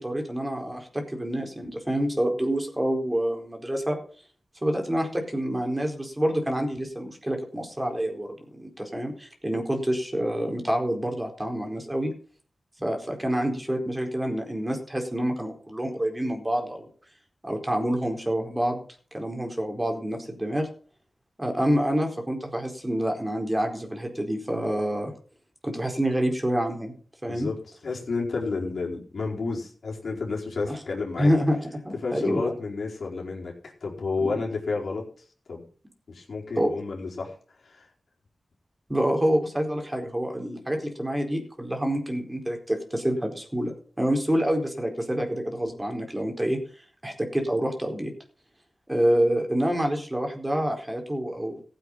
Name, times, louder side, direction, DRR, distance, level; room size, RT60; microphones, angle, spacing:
voice 1, 0.0-4.0 4.6-12.1 12.8-16.9 17.4-18.8 19.1-20.7 21.4-25.1 25.6-26.9 27.2-27.5 30.7-30.8 31.2-31.6 31.8-32.5 34.2-34.3 36.6-36.7 38.9-46.6 47.0-48.1 48.9-51.6, equal, 15° right, 3 dB, 4.4 m, -27 dB
voice 2, 27.3-31.3 32.0-33.5 33.8-35.0 35.5-35.6 36.1-37.3 37.6-37.9, left 4 dB, 75° left, -1 dB, 4.6 m, -31 dB
15.5 x 8.5 x 5.8 m, 0.42 s
cardioid pair, 55°, 0 cm